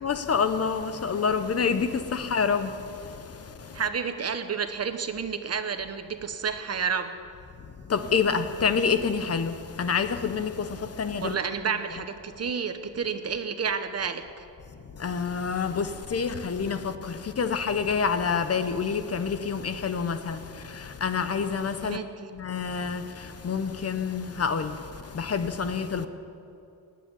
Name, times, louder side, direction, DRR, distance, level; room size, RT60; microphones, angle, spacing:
voice 1, 0.0-3.8 7.9-11.4 14.9-22.0 22.3-26.1, left 5 dB, 40° left, 0.8 m, -28 dB
voice 2, 3.7-7.1 11.2-14.4 21.8-22.3, right 6 dB, 45° right, 1.0 m, -30 dB
19.5 x 7.6 x 9.7 m
wide cardioid pair, 135°, 36 cm